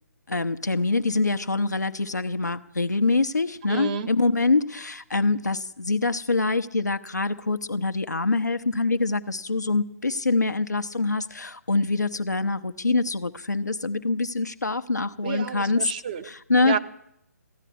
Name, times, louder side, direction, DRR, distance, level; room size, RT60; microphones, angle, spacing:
voice 1, 0.3-15.9 16.2-16.8, left 3 dB, 85° left, 8 dB, 1.0 m, -25 dB
voice 2, 3.7-4.1 15.2-16.3 16.6-16.8, right 7 dB, 30° right, 10 dB, 0.7 m, -30 dB
15.0 x 11.0 x 8.5 m, 0.76 s
figure-of-eight pair, 145°, 9 cm